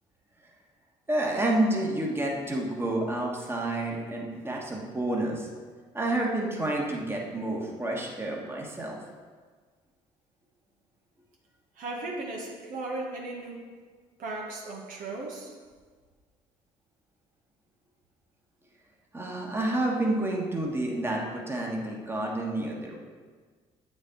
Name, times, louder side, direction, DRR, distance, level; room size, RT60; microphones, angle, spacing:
voice 1, 1.1-5.5 5.9-9.0 19.1-23.0, right 1 dB, 15° right, -1 dB, 1.3 m, -29 dB
voice 2, 11.7-13.8 14.2-15.6, right 2 dB, 65° right, -1 dB, 1.2 m, -36 dB
7.8 x 4.3 x 3.8 m, 1.5 s
hypercardioid pair, 60°, 15 cm